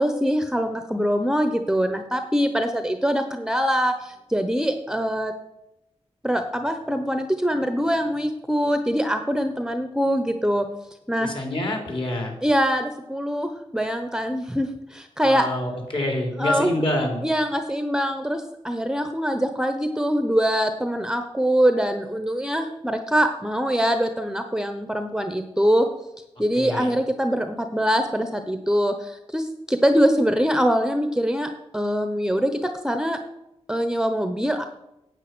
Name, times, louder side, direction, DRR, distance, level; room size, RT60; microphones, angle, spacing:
voice 1, 0.0-5.3 6.2-10.7 11.1-11.3 12.4-15.5 16.4-16.8 17.2-25.9 26.4-31.5 31.7-32.5 32.8-33.2 33.7-34.6, equal, 5° right, 7 dB, 1.0 m, -23 dB
voice 2, 11.2-12.3 15.2-17.3 26.5-26.9, left 1 dB, 45° left, 1 dB, 3.8 m, -27 dB
9.1 x 8.2 x 6.2 m, 0.88 s
cardioid pair, 65°, 12 cm